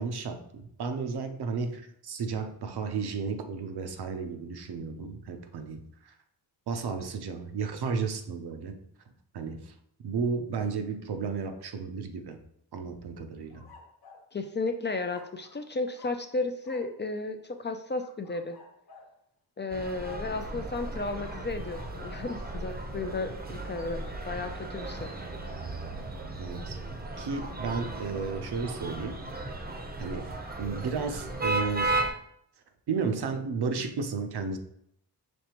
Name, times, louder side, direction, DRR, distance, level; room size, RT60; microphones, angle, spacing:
voice 1, 0.0-6.1 6.7-8.8 9.3-9.7 10.0-12.4 12.7-13.6 26.4-26.8 27.2-29.4 30.0-30.3 30.6-32.2 32.9-34.6, right 5 dB, 70° right, 6 dB, 0.7 m, -33 dB
sound 1, 13.5-14.3 15.1-15.7 15.9-16.3 16.6-16.9 17.9-19.2 21.2-22.0 23.5-24.2, left 3 dB, 65° left, 1.0 m, -53 dB
voice 2, 14.3-18.6 19.6-25.1, left 3 dB, 30° left, 6 dB, 0.4 m, -34 dB
sound 2, 19.7-32.1, right 2 dB, 25° right, 0.7 m, -35 dB
5.3 x 3.3 x 3.0 m, 0.72 s
wide cardioid pair, 95°, 40 cm